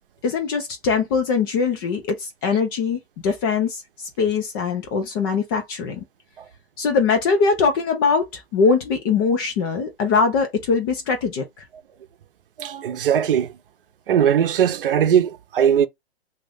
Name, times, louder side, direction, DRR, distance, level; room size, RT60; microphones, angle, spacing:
voice 1, 0.2-6.0 6.8-11.4, left 5 dB, 20° left, 0.5 m, -22 dB
voice 2, 12.6-13.5 14.1-15.9, right 9 dB, 55° right, 0.7 m, -19 dB
2.6 x 2.5 x 3.4 m
hypercardioid pair, 135°, 32 cm